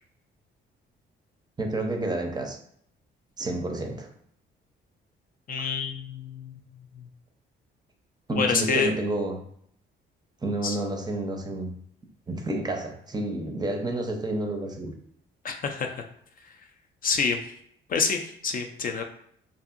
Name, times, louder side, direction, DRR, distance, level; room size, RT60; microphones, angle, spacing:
voice 1, 1.6-2.6 3.4-4.1 5.6-5.7 8.3-9.4 10.4-11.7 12.3-14.9, right 2 dB, 20° right, 3 dB, 0.5 m, -30 dB
voice 2, 5.5-6.6 7.0-7.1 8.3-8.9 10.6-10.8 15.4-16.0 17.0-17.4 17.9-19.0, left 5 dB, 45° left, 5 dB, 0.4 m, -27 dB
2.7 x 2.6 x 2.4 m, 0.65 s
cardioid pair, 90°, 20 cm